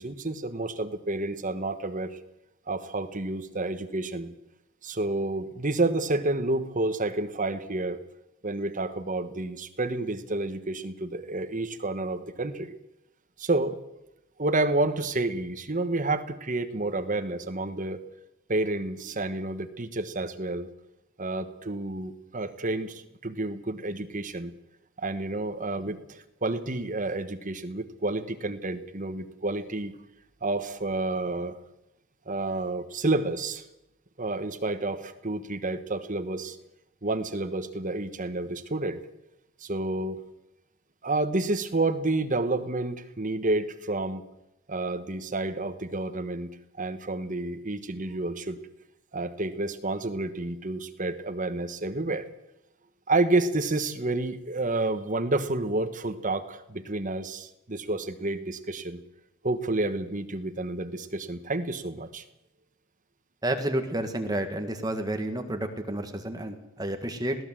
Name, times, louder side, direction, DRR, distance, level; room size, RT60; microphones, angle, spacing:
voice 1, 0.0-2.2 2.7-4.3 4.8-8.0 8.4-12.7 13.4-13.8 14.4-18.0 18.5-20.7 21.2-24.5 25.0-29.9 30.4-31.6 32.3-33.6 34.2-36.6 37.0-39.0 39.6-40.2 41.0-44.2 44.7-46.5 46.8-48.6 49.1-52.3 53.1-59.0 59.4-62.2, right 2 dB, 35° right, 9 dB, 1.2 m, -29 dB
voice 2, 63.4-67.4, right 1 dB, 15° right, 5 dB, 1.7 m, -30 dB
21.0 x 16.5 x 7.6 m, 0.87 s
head